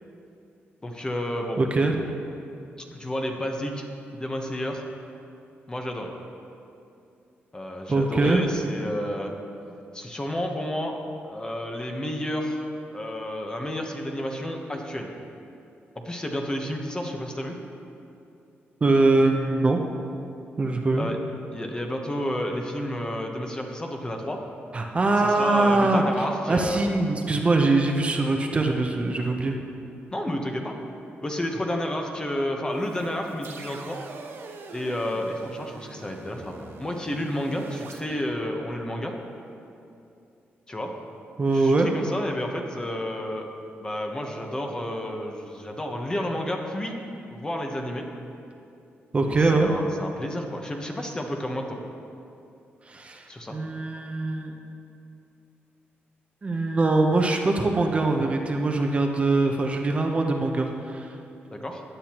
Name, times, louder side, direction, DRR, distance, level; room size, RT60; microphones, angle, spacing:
voice 1, 0.8-1.6 2.9-3.8 4.1-4.8 5.7-6.1 7.5-9.3 9.9-10.9 11.2-12.6 12.9-15.1 15.9-17.6 20.9-21.2 21.5-24.4 25.2-26.8 30.1-30.8 31.2-34.0 34.7-39.1 40.7-40.9 41.5-43.5 43.8-47.0 47.3-48.1 49.3-51.8 53.3-53.6 61.5-61.8, left 1 dB, 20° left, 2 dB, 1.1 m, -31 dB
voice 2, 1.6-1.9 7.9-8.4 18.8-19.8 20.6-21.1 24.7-26.0 26.5-29.6 38.1-38.2 41.4-41.9 49.1-49.7 52.9-54.5 56.4-61.1, right 2 dB, 30° right, 2 dB, 0.8 m, -22 dB
sound 1, 32.7-38.0, right 4 dB, 65° right, 0.9 m, -44 dB
16.0 x 10.0 x 3.0 m, 2.6 s
cardioid pair, 125°, 4 cm